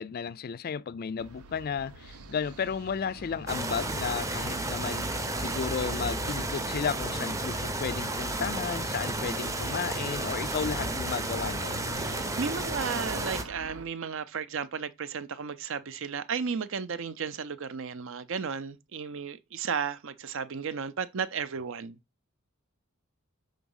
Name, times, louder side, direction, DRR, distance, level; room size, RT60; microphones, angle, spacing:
voice 1, 0.0-5.1 5.4-11.8, left 6 dB, 45° left, 0.3 m, -33 dB
sound 1, 1.2-13.9, right 2 dB, 90° right, 0.8 m, -44 dB
sound 2, 3.5-13.4, right 2 dB, 15° right, 0.6 m, -32 dB
voice 2, 12.0-22.0, right 6 dB, 60° right, 0.6 m, -34 dB
6.0 x 3.9 x 5.4 m
head